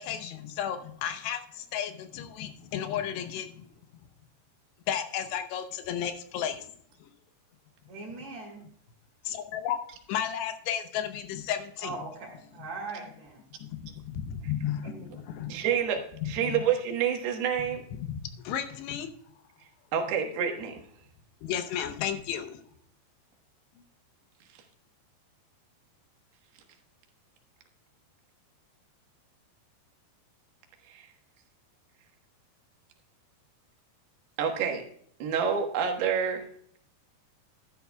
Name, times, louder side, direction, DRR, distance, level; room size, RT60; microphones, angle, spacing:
voice 1, 0.0-3.7 4.9-6.7 9.3-9.8 10.1-12.0 13.6-15.6 16.2-16.6 18.0-18.2 18.4-19.1 21.4-22.6, left 9 dB, 80° left, 8 dB, 3.0 m, -33 dB
voice 2, 7.9-8.6 11.8-13.4 14.8-15.0, right 3 dB, 45° right, -4 dB, 2.8 m, -40 dB
voice 3, 15.5-17.8 19.9-20.8 30.9-31.1 34.4-34.8 35.2-36.4, right 7 dB, 70° right, 4 dB, 3.2 m, -28 dB
12.5 x 10.5 x 2.2 m, 0.64 s
omnidirectional pair, 4.9 m